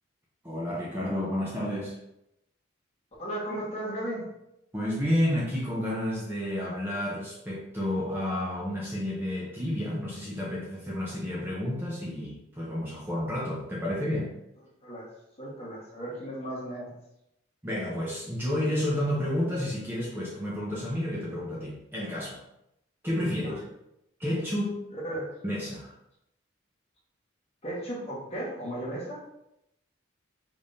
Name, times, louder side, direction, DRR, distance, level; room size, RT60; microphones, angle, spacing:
voice 1, 0.4-2.0 4.7-14.3 17.6-22.4 23.0-23.6 24.2-24.8 25.4-25.9, left 1 dB, 10° right, -6 dB, 0.8 m, -30 dB
voice 2, 3.2-4.3 14.8-15.1 15.4-16.9 23.4-23.6 25.0-25.3 27.6-29.2, right 1 dB, 30° left, -6 dB, 1.4 m, -35 dB
5.1 x 3.5 x 2.7 m, 0.84 s
head